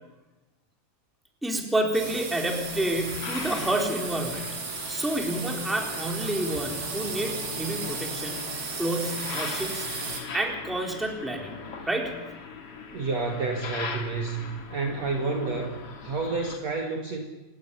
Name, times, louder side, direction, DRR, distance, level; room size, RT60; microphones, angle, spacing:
voice 1, 1.4-4.6 4.9-8.5 8.8-11.5 11.9-12.1, right 1 dB, ahead, 1 dB, 3.6 m, -29 dB
sound 1, 1.9-10.2, right 4 dB, 75° right, 6.0 m, -35 dB
sound 2, 2.5-16.6, left 5 dB, 40° left, 2.9 m, -41 dB
voice 2, 12.9-17.2, right 3 dB, 50° right, 2 dB, 2.7 m, -30 dB
27.5 x 16.0 x 10.0 m, 1.1 s
omnidirectional pair, 4.4 m